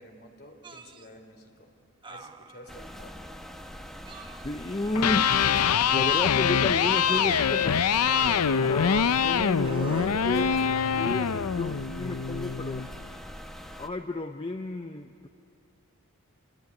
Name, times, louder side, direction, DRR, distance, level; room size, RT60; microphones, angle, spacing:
voice 1, 0.0-1.7 2.1-3.2, equal, 45° left, 5 dB, 3.2 m, -50 dB
sound 1, 0.6-1.1 2.0-3.0 4.0-4.9 5.7-6.6 7.0-8.8 9.6-11.1 12.2-12.4, right 3 dB, 20° right, 0.8 m, -42 dB
sound 2, 2.7-13.9, equal, ahead, 1.0 m, -43 dB
voice 2, 4.4-5.3 5.9-7.8 8.2-10.6 10.9-12.9 13.8-15.3, left 2 dB, 25° left, 7 dB, 0.6 m, -32 dB
Electric guitar, 4.8-12.9, left 7 dB, 90° left, 0.6 m, -24 dB
28.0 x 21.5 x 9.7 m, 2.6 s
head